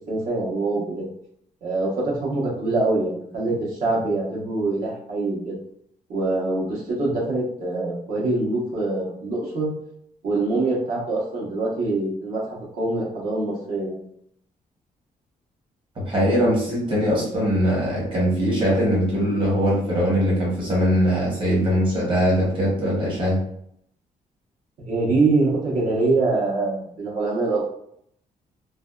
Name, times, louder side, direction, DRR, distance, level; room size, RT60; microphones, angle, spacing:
voice 1, 0.1-1.1 1.6-5.6 6.1-9.7 10.2-14.0 24.8-27.6, right 2 dB, 65° right, -4 dB, 1.0 m, -24 dB
voice 2, 16.0-23.4, equal, 35° right, -5 dB, 1.0 m, -21 dB
2.6 x 2.2 x 2.3 m, 0.69 s
cardioid pair, 160°, 15 cm